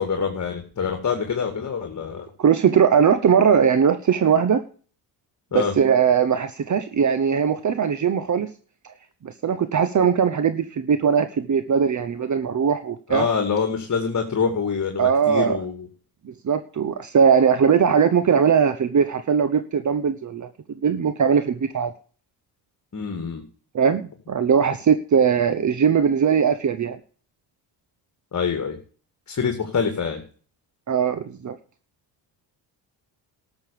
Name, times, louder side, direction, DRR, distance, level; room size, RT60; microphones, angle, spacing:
voice 1, 0.0-2.3 5.5-5.7 13.1-15.9 22.9-23.4 28.3-28.8 29.3-30.2, left 6 dB, 35° left, 5 dB, 2.4 m, -25 dB
voice 2, 2.4-4.6 5.5-8.5 9.2-13.3 15.0-15.6 16.2-20.5 20.8-21.9 23.7-27.0 30.9-31.6, right 7 dB, 40° right, 11 dB, 1.0 m, -20 dB
13.0 x 6.9 x 6.9 m, 0.41 s
cardioid pair, 85°, 45 cm